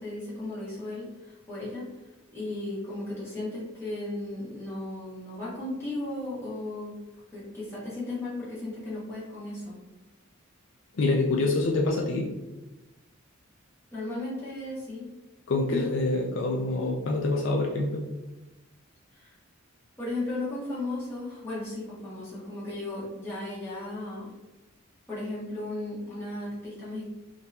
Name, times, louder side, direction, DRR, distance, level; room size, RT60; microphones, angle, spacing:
voice 1, 0.0-6.9 7.3-9.8 13.9-15.1 15.7-15.9 19.1-19.4 20.0-24.3 25.1-27.1, left 2 dB, 10° left, -10 dB, 1.5 m, -35 dB
voice 2, 11.0-12.3 15.5-18.0, left 2 dB, 60° left, 0 dB, 0.4 m, -26 dB
3.6 x 2.9 x 2.7 m, 1.0 s
head